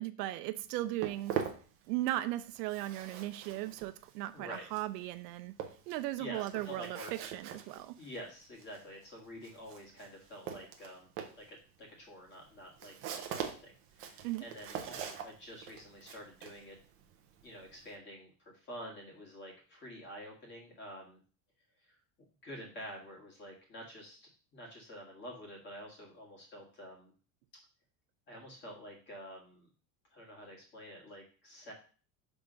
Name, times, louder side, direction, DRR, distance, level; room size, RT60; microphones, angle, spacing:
voice 1, 0.0-1.4 1.9-5.5 5.9-8.0 14.2-14.5, right 15 dB, 75° right, 12 dB, 0.6 m, -37 dB
Walk footsteps, 0.6-2.3 2.6-18.0, right 8 dB, 25° right, 0.6 m, -43 dB
voice 2, 4.3-4.7 6.2-7.3 8.0-11.1 11.4-16.8 17.4-21.2 21.8-27.1 28.3-29.7 30.1-31.7, equal, 20° left, -1 dB, 1.8 m, -48 dB
6.0 x 3.6 x 5.1 m, 0.39 s
cardioid pair, 170°, 49 cm